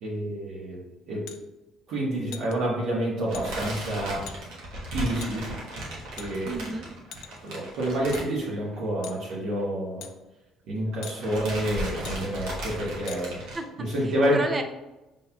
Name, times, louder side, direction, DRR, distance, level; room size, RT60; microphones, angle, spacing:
voice 1, 0.0-0.8 1.1-1.2 1.9-4.2 4.9-5.5 6.2-6.5 7.4-10.0 10.7-13.4 13.9-14.4, right 1 dB, 70° right, -6 dB, 1.2 m, -28 dB
sound 1, 1.3-1.4 2.3-2.5 3.3-3.5 4.3-4.4 5.2-5.3 6.2-6.6 7.1-7.5 8.1-8.2 9.0-9.2 10.0-10.1 11.0-11.2 12.0-12.2 13.1-13.2, left 9 dB, 75° left, 0.4 m, -42 dB
sound 2, 3.3-8.9 9.1-9.3 9.6-9.7 10.6-10.9 11.2-13.6, right 1 dB, 90° right, 1.2 m, -36 dB
voice 2, 6.5-6.9 13.5-14.6, right 3 dB, 25° right, 7 dB, 0.4 m, -33 dB
5.7 x 3.4 x 2.3 m, 1.0 s
cardioid pair, 140°, 0 cm